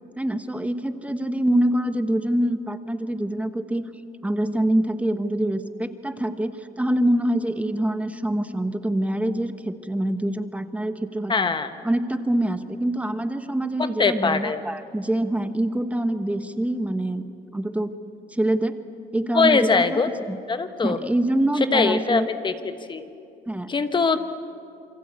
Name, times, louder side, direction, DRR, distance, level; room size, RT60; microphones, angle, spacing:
voice 1, 0.2-3.8 4.2-11.3 11.8-17.3 17.5-17.9 18.3-18.8 19.1-20.0 20.3-20.4 20.8-22.3 23.5-23.7, right 1 dB, 10° right, 9 dB, 1.2 m, -25 dB
voice 2, 11.3-11.7 14.0-14.6 19.3-20.1 20.5-21.0 21.7-22.5 22.9-23.1 23.7-24.2, left 4 dB, 30° left, 9 dB, 1.1 m, -21 dB
28.0 x 23.5 x 8.5 m, 2.8 s
cardioid pair, 110°, 17 cm